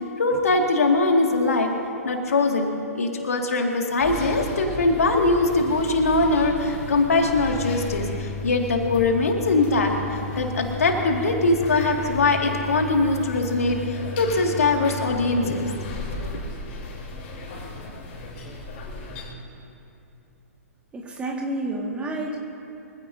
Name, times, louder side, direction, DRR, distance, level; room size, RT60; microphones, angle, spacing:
voice 1, 0.2-1.7 2.0-2.7 2.9-15.8 16.2-16.4, left 3 dB, 65° left, 2 dB, 2.2 m, -22 dB
sound 1, 4.0-19.3, left 2 dB, 40° left, 3.7 m, -34 dB
voice 2, 20.9-22.4, right 1 dB, 15° right, 0 dB, 1.9 m, -29 dB
24.5 x 16.0 x 2.8 m, 2.9 s
figure-of-eight pair, 120°, 8 cm